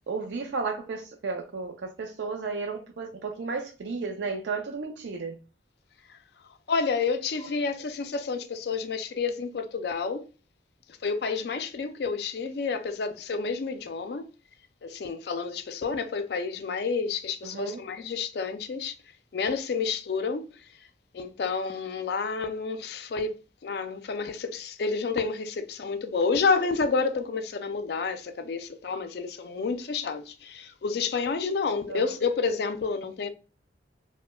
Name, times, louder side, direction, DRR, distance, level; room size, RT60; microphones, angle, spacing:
voice 1, 0.1-5.4 17.4-17.8 31.9-32.0, right 4 dB, 70° right, 0.4 m, -33 dB
voice 2, 6.7-10.3 11.0-14.3 14.8-18.9 19.3-20.5 21.1-33.3, left 4 dB, 60° left, 0.4 m, -29 dB
4.6 x 2.1 x 2.2 m
head